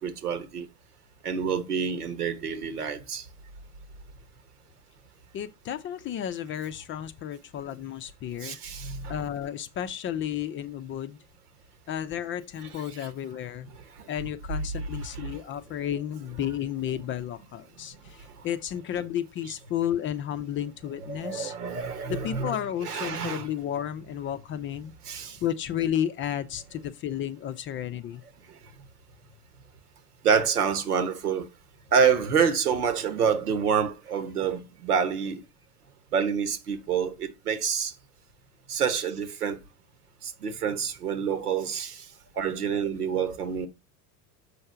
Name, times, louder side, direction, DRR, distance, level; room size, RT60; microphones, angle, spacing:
voice 1, 0.0-0.7 1.2-3.3 8.4-9.1 14.0-14.1 15.1-15.4 18.2-18.5 21.1-22.6 22.8-23.5 25.0-25.4 28.5-28.6 30.2-31.5 31.9-35.4 36.1-37.9 38.7-39.6 40.2-42.1 42.4-43.7, right 6 dB, 75° right, 1.4 m, -27 dB
voice 2, 5.3-8.8 9.1-11.2 11.9-13.7 14.1-21.5 22.1-28.2, left 10 dB, 25° left, 0.6 m, -32 dB
7.0 x 5.5 x 5.6 m
figure-of-eight pair, 80°, 46 cm